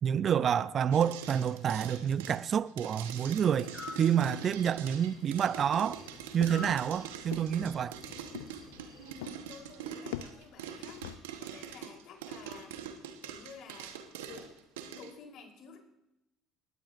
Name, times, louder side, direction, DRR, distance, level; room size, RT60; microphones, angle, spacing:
voice 1, 0.0-3.7 4.0-6.0 6.3-8.0, right 8 dB, 45° right, 0.4 m, -28 dB
sound 1, 0.9-15.1, right 8 dB, 85° right, 1.1 m, -44 dB
sound 2, 2.9-9.1, left 3 dB, 40° left, 3.2 m, -50 dB
sound 3, 5.5-11.2, left 12 dB, 80° left, 0.5 m, -45 dB
voice 2, 9.0-12.8 13.2-14.5 14.9-15.8, left 5 dB, 60° left, 3.8 m, -52 dB
20.0 x 16.0 x 2.6 m
hypercardioid pair, 65°, 0 cm